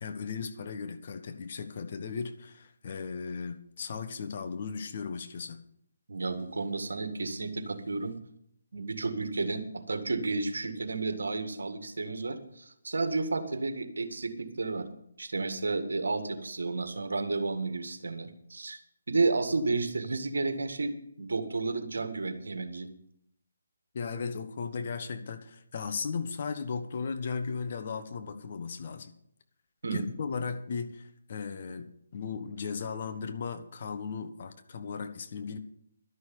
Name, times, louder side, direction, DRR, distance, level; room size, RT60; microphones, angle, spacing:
voice 1, 0.0-5.6 23.9-29.1 29.9-35.6, left 5 dB, 45° left, 9 dB, 1.2 m, -36 dB
voice 2, 6.1-8.2 8.7-14.9 15.2-18.8 19.1-22.9 29.8-30.0, right 3 dB, 70° right, 8 dB, 1.9 m, -32 dB
12.0 x 6.4 x 9.5 m, 0.73 s
figure-of-eight pair, 150°, 0 cm